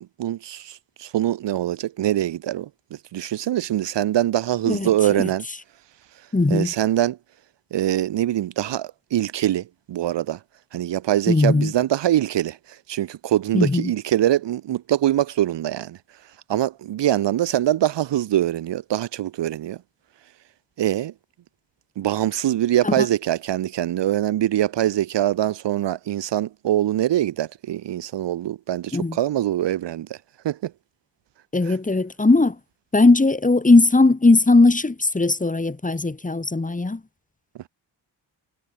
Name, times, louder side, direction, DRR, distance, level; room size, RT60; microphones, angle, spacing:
voice 1, 0.2-2.7 3.1-5.4 6.5-7.2 7.7-10.4 10.7-16.0 16.5-19.8 20.8-21.1 22.0-30.2 30.4-30.7 31.7-31.8, right 12 dB, 70° right, 0.8 m, -23 dB
voice 2, 4.7-5.3 6.3-6.7 11.3-11.7 13.5-13.9 22.8-23.0 28.9-29.2 31.5-32.6 32.9-37.0, left 3 dB, 15° left, 2.8 m, -18 dB
wide cardioid pair, 135°, 45 cm